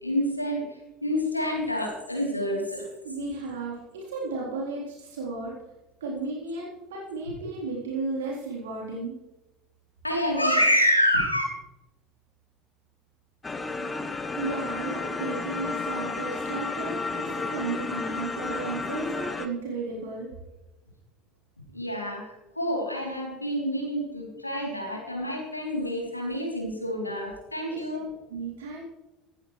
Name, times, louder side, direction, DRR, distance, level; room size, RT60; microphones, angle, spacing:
voice 1, 0.0-2.9 10.0-11.4 21.7-28.1, equal, 90° left, -1 dB, 3.4 m, -27 dB
voice 2, 3.0-5.6 6.0-9.2 14.3-20.3 27.7-28.0 28.3-28.8, right 3 dB, 70° right, -5 dB, 3.8 m, -34 dB
sound 1, 13.4-19.5, left 3 dB, 20° left, 1.2 m, -32 dB
16.0 x 14.5 x 3.3 m, 1.0 s
figure-of-eight pair, 65°, 0 cm